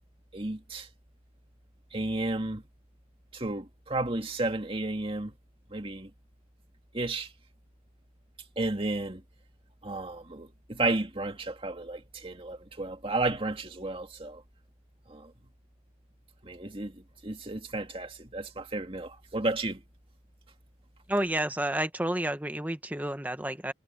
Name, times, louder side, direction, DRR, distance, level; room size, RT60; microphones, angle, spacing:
voice 1, 0.3-0.9 1.9-2.6 3.3-5.3 5.7-6.1 6.9-7.3 8.6-9.2 9.8-14.4 15.1-15.3 16.4-19.8, right 2 dB, 30° right, 2.2 m, -32 dB
voice 2, 21.1-23.7, right 1 dB, 10° right, 1.1 m, -30 dB
head